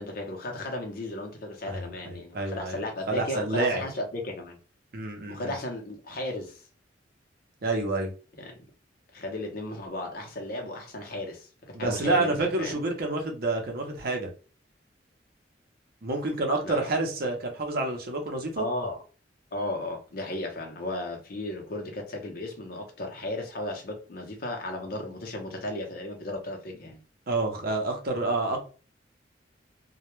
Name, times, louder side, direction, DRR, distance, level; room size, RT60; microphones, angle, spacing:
voice 1, 0.0-4.6 5.3-6.6 8.4-8.5 9.1-12.8 16.6-16.9 18.6-19.0 19.5-27.0, left 1 dB, 50° left, 0.7 m, -35 dB
voice 2, 1.6-3.8 4.9-5.5 7.6-8.1 11.7-14.3 16.0-18.7 27.3-28.6, right 2 dB, 55° right, 0.6 m, -28 dB
2.2 x 2.1 x 3.0 m
head